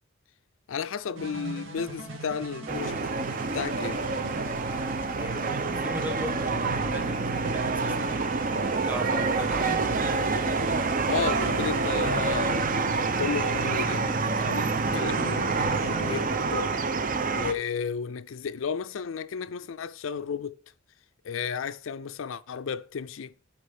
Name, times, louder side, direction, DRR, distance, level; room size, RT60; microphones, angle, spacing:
voice 1, 0.7-3.0 3.5-4.0 11.1-12.8 13.2-16.7 17.3-20.5 21.2-23.3, left 6 dB, 85° left, 0.4 m, -33 dB
sound 1, 1.2-16.3, right 2 dB, 90° right, 2.2 m, -40 dB
sound 2, 2.7-17.5, right 4 dB, 45° right, 0.7 m, -27 dB
voice 2, 5.2-8.2 8.9-10.2, equal, 10° right, 1.3 m, -38 dB
8.6 x 4.0 x 7.0 m
head